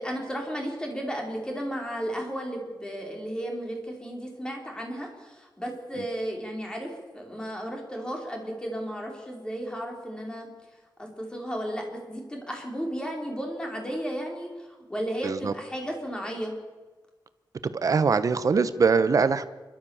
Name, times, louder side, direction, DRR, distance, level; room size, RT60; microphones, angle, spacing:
voice 1, 0.0-10.5 11.0-16.5, equal, 10° left, 0 dB, 4.6 m, -34 dB
voice 2, 15.2-15.5 17.6-19.4, right 5 dB, 50° right, 12 dB, 1.0 m, -23 dB
29.5 x 13.0 x 7.3 m, 1.3 s
wide cardioid pair, 125°, 8 cm